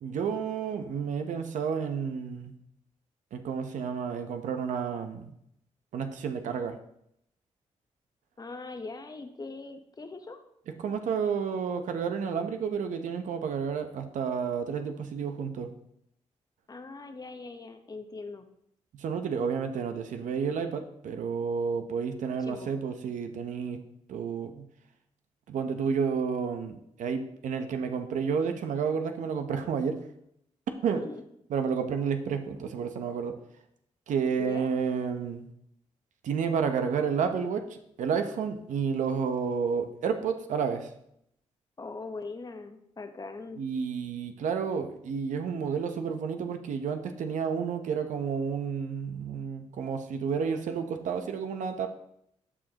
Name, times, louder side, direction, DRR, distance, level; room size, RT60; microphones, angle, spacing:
voice 1, 0.0-2.5 3.3-5.3 5.9-6.8 10.8-15.7 18.9-23.8 24.1-24.7 25.5-30.0 30.8-31.0 31.5-33.4 34.1-35.5 36.2-40.9 43.6-51.9, right 6 dB, 85° right, 7 dB, 0.8 m, -31 dB
voice 2, 8.4-10.4 16.7-18.5 22.4-22.7 30.9-31.2 34.4-34.7 41.8-43.6, left 3 dB, 30° left, 7 dB, 0.9 m, -41 dB
13.5 x 5.0 x 2.9 m, 0.75 s
cardioid pair, 75°, 13 cm